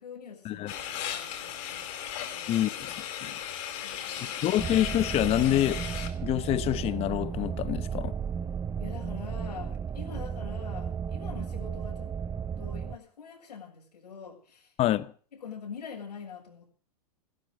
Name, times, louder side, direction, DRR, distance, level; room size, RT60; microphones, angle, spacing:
voice 1, 0.0-1.9 2.2-2.7 3.8-4.4 8.8-12.1 12.6-14.7 15.3-16.7, left 6 dB, 85° left, 7.1 m, -45 dB
sound 1, 0.7-6.1, left 9 dB, 55° left, 4.9 m, -36 dB
voice 2, 2.5-2.9 3.2-3.3 4.4-5.8 6.2-8.1 14.8-15.1, left 13 dB, 30° left, 1.0 m, -27 dB
sound 2, 4.6-13.0, right 7 dB, 15° right, 0.9 m, -34 dB
15.5 x 13.0 x 6.8 m
hypercardioid pair, 125°, 21 cm